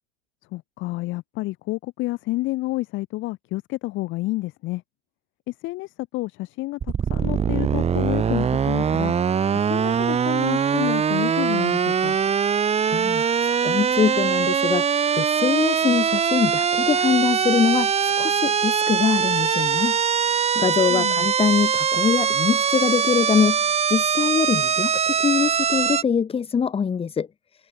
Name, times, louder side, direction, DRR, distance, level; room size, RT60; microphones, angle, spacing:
voice 1, 0.5-4.8 5.5-6.8 7.1-9.1 9.5-12.2 20.9-21.3, left 19 dB, 40° left, 4.4 m, -29 dB
sound 1, 6.8-26.0, right 7 dB, 20° right, 4.8 m, -22 dB
voice 2, 12.9-20.0 20.5-27.3, left 6 dB, 20° left, 5.0 m, -23 dB
hypercardioid pair, 105°, 30 cm